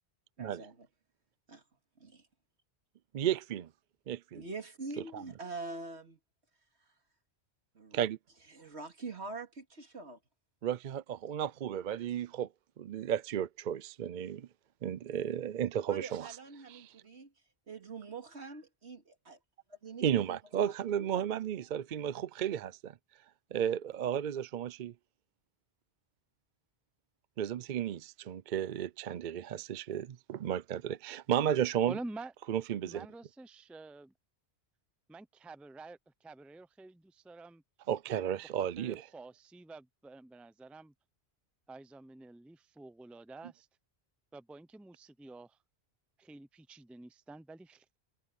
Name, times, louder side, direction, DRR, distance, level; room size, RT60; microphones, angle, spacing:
voice 1, 0.4-0.9 1.5-1.6 2.0-2.3 4.3-6.2 7.7-8.1 8.5-10.2 15.9-17.3 17.7-19.4 19.7-20.4 21.0-21.3, right 3 dB, 80° right, 2.7 m, -44 dB
voice 2, 3.1-3.7 4.1-4.4 5.1-5.2 7.9-8.2 10.6-12.5 12.8-14.5 14.8-16.3 16.7-16.9 20.0-22.9 23.5-24.9 27.4-32.0 32.5-33.1 37.9-39.1, right 9 dB, 55° right, 0.6 m, -33 dB
voice 3, 31.9-32.3 32.8-34.1 35.1-37.6 38.6-40.9 41.7-43.7 44.3-45.6 46.2-48.0, right 2 dB, ahead, 0.4 m, -48 dB
omnidirectional pair, 1.1 m